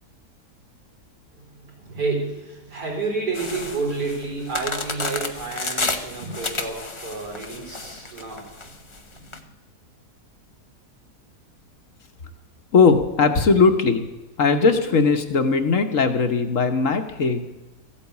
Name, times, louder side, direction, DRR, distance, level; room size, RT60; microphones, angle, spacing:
voice 1, 1.3-8.5 8.9-9.3, right 3 dB, 80° right, -1 dB, 4.8 m, -30 dB
sound 1, 3.3-9.4, left 3 dB, 25° left, 0.7 m, -31 dB
voice 2, 12.7-14.0 14.4-17.4, left 4 dB, 55° left, 7 dB, 1.4 m, -19 dB
14.5 x 8.8 x 8.3 m, 1.1 s
omnidirectional pair, 1.7 m